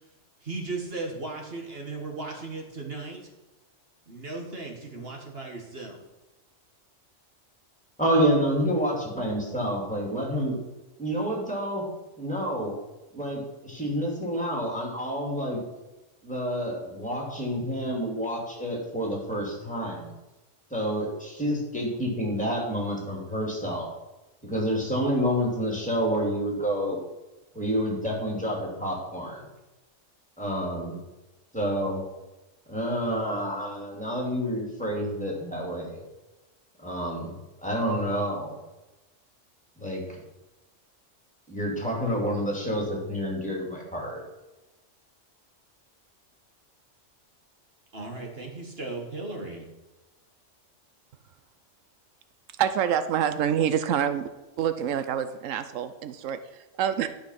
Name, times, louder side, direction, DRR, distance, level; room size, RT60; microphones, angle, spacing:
voice 1, 0.4-3.2 4.1-6.0 47.9-49.7, right 3 dB, 50° right, 1 dB, 1.9 m, -36 dB
voice 2, 8.0-10.5 11.0-11.8 12.2-12.7 13.1-15.6 16.2-20.1 20.7-23.9 24.4-27.0 27.5-29.5 30.4-31.0 31.5-32.0 32.7-36.0 36.8-37.4 37.6-38.6 39.8-40.2 41.5-44.2, equal, 5° left, -2 dB, 2.7 m, -28 dB
voice 3, 52.6-54.3 54.6-57.1, right 9 dB, 85° right, 11 dB, 1.0 m, -27 dB
11.5 x 5.8 x 5.8 m, 1.1 s
omnidirectional pair, 1.3 m